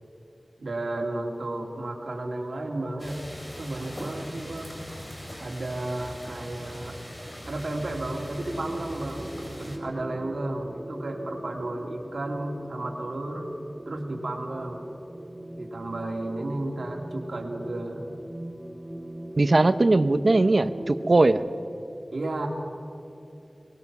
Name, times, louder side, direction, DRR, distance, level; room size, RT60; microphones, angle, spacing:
voice 1, 0.6-3.2 3.6-4.8 5.4-7.0 7.5-13.5 13.9-14.9 15.5-18.0 22.1-22.5, right 2 dB, 85° right, 1 dB, 2.6 m, -33 dB
sound 1, 3.0-9.8, equal, 25° left, 3.9 m, -41 dB
sound 2, 8.4-21.3, right 1 dB, 20° right, 2.3 m, -40 dB
voice 2, 19.4-21.4, right 2 dB, 60° right, 13 dB, 0.8 m, -20 dB
23.5 x 20.0 x 6.1 m, 2.9 s
wide cardioid pair, 55°, 0 cm